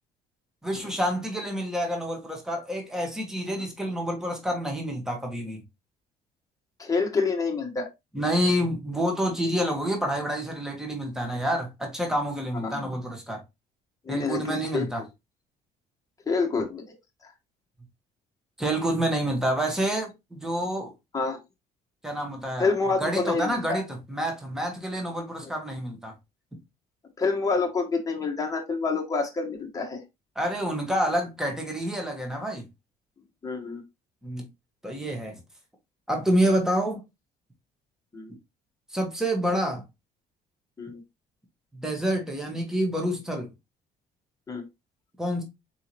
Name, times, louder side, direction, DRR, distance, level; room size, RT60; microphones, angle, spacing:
voice 1, 0.6-5.6 8.1-13.4 14.1-15.0 18.6-20.9 22.0-22.7 23.0-26.1 30.3-32.6 34.2-34.5 34.8-35.4 36.1-37.0 38.9-39.8 41.7-43.5 45.2-45.4, equal, 5° right, 1.4 m, -28 dB
voice 2, 6.8-7.9 12.6-12.8 14.0-14.9 16.3-17.0 21.1-21.4 22.6-23.8 27.2-30.0 33.4-33.8 38.1-38.3 40.8-41.0 44.5-44.6, left 4 dB, 20° left, 1.3 m, -27 dB
4.3 x 3.6 x 3.0 m
cardioid pair, 110°, 17 cm